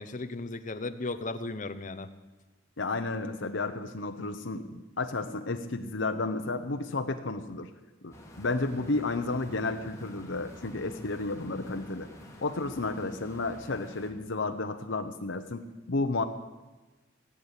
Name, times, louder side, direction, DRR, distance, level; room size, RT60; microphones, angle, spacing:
voice 1, 0.0-2.1, left 2 dB, 40° left, 10 dB, 0.9 m, -36 dB
voice 2, 2.8-7.7 8.0-12.1 12.4-15.6 15.9-16.2, left 3 dB, 75° left, 6 dB, 1.0 m, -32 dB
sound 1, 8.1-14.1, equal, 15° left, 2.5 m, -49 dB
18.0 x 8.7 x 8.2 m, 1.2 s
head